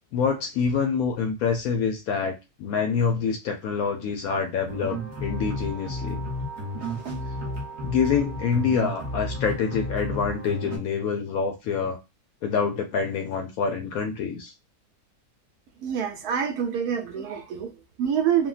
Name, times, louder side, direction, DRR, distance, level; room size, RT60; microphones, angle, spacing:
voice 1, 0.1-6.2 7.8-12.0 12.4-14.5, left 6 dB, 70° left, 0.9 m, -26 dB
sound 1, 4.7-10.8, equal, 50° right, 1.0 m, -32 dB
voice 2, 15.8-18.5, right 8 dB, 70° right, 1.0 m, -26 dB
3.5 x 2.2 x 2.3 m
omnidirectional pair, 1.8 m